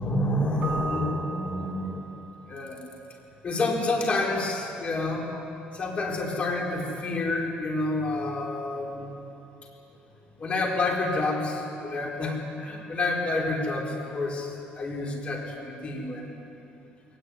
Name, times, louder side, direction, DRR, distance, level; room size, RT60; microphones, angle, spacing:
voice 1, 0.0-2.1 2.5-2.8 3.4-5.3 5.7-9.1 10.4-16.4 16.6-16.7, left 2 dB, 35° left, -1 dB, 4.7 m, -29 dB
Keyboard (musical), 0.6-2.4, right 5 dB, 45° right, 1.7 m, -36 dB
21.0 x 19.0 x 9.7 m, 3.0 s
cardioid pair, 125°, 4 cm